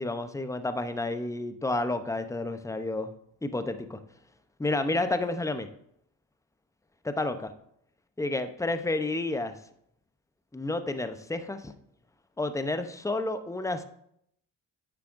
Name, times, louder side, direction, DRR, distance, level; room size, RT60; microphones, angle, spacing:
voice 1, 0.0-3.1 3.4-4.0 4.6-5.7 7.0-7.5 8.2-9.6 10.5-11.7 12.4-13.8, left 2 dB, 5° left, 9 dB, 0.7 m, -30 dB
9.6 x 6.7 x 2.6 m, 0.71 s
supercardioid pair, 50°, 48 cm